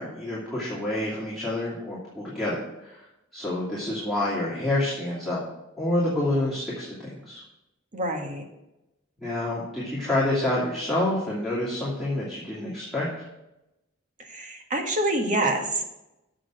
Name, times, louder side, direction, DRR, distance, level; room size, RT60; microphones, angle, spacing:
voice 1, 0.0-3.1 3.3-5.4 5.8-7.4 9.2-13.2, left 1 dB, ahead, -10 dB, 2.7 m, -28 dB
voice 2, 7.9-8.4 14.3-15.8, right 1 dB, 40° right, 2 dB, 1.7 m, -26 dB
7.6 x 6.3 x 7.8 m, 0.92 s
head